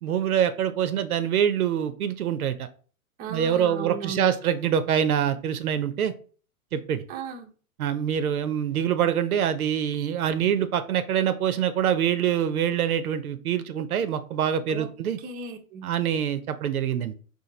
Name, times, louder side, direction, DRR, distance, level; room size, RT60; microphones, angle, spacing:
voice 1, 0.0-2.7 3.3-6.1 6.7-7.0 7.8-15.2 15.8-17.1, right 9 dB, 75° right, 0.6 m, -25 dB
voice 2, 3.2-4.3 7.1-7.5 14.7-14.9 15.2-15.9, right 6 dB, 20° right, 0.6 m, -36 dB
4.3 x 2.5 x 3.7 m
hypercardioid pair, 110°, 44 cm